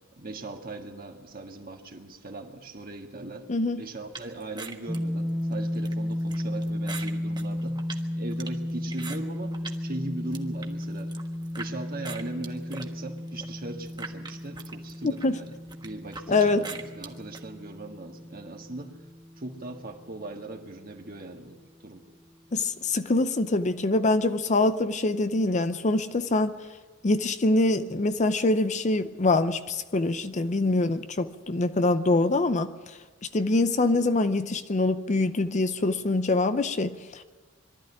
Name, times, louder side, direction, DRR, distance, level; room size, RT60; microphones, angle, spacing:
voice 1, 0.2-3.5 3.8-7.8 8.1-11.2 11.6-15.5 15.8-18.9 19.4-21.6 21.8-22.0, right 2 dB, 45° right, 1.8 m, -39 dB
voice 2, 3.5-3.8 15.0-15.4 16.3-16.6 22.5-26.6 27.0-33.0 33.3-37.2, left 2 dB, 35° left, 0.6 m, -24 dB
sound 1, 4.1-9.8 10.2-11.7 12.0-17.4, right 4 dB, 20° right, 1.4 m, -42 dB
sound 2, 4.9-20.8, left 1 dB, 5° right, 0.7 m, -34 dB
22.5 x 13.0 x 10.0 m
head